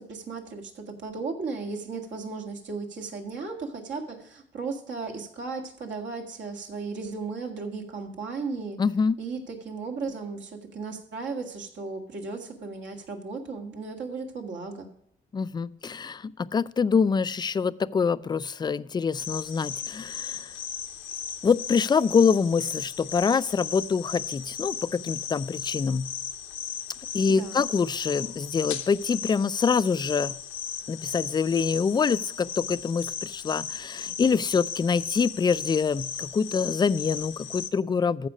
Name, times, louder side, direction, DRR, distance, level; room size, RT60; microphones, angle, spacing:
voice 1, 0.0-8.8 9.2-14.9 27.3-27.7, right 4 dB, 65° right, 3 dB, 1.8 m, -35 dB
voice 2, 8.8-9.2 15.3-20.5 21.4-26.1 27.1-30.4 30.9-38.3, left 5 dB, 20° left, 17 dB, 0.3 m, -25 dB
sound 1, 19.2-37.7, left 8 dB, 80° left, 0.9 m, -36 dB
14.5 x 5.0 x 5.0 m, 0.73 s
cardioid pair, 90°, 20 cm